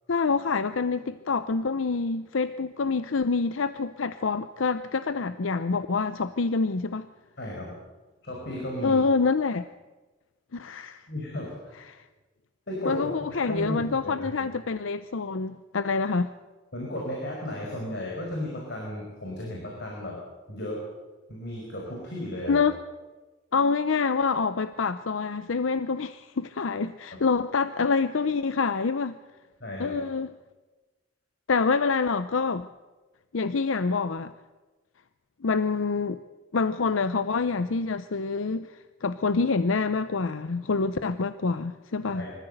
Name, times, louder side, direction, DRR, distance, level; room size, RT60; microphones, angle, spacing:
voice 1, 0.1-7.1 8.8-9.6 10.5-11.1 11.9-12.0 12.8-16.3 22.5-22.8 23.5-29.2 29.8-30.3 31.5-32.7 33.3-34.3 35.4-36.2 36.5-42.3, left 4 dB, 85° left, 12 dB, 0.6 m, -26 dB
voice 2, 7.4-7.8 8.2-9.0 11.1-11.7 12.7-14.5 16.7-20.2 20.5-20.8 21.3-22.6 29.6-30.0 42.1-42.3, left 1 dB, 60° left, -2 dB, 5.4 m, -34 dB
24.0 x 14.5 x 8.0 m, 1.2 s
head